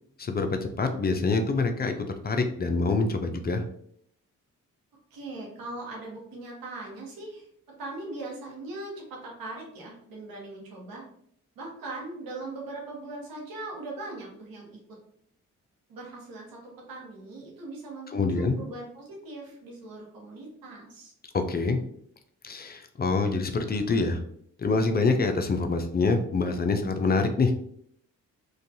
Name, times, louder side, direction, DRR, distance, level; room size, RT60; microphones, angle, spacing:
voice 1, 0.2-3.6 18.1-18.6 21.3-21.8 22.4-24.2 24.6-27.5, left 3 dB, 30° left, 6 dB, 0.4 m, -26 dB
voice 2, 5.1-7.5 7.8-11.0 11.6-14.8 15.9-21.1, right 2 dB, 80° right, -2 dB, 0.9 m, -40 dB
2.5 x 2.3 x 2.6 m, 0.66 s
supercardioid pair, 50°, 34 cm